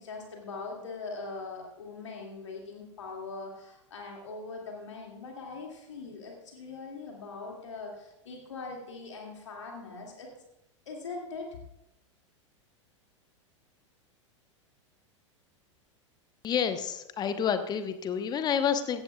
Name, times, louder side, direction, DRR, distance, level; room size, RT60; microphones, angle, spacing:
voice 1, 0.0-10.3 10.9-11.5, left 3 dB, 70° left, 0 dB, 2.3 m, -41 dB
voice 2, 16.4-19.0, left 7 dB, 25° left, 10 dB, 1.0 m, -29 dB
16.5 x 14.5 x 2.3 m, 0.85 s
figure-of-eight pair, 90°, 16 cm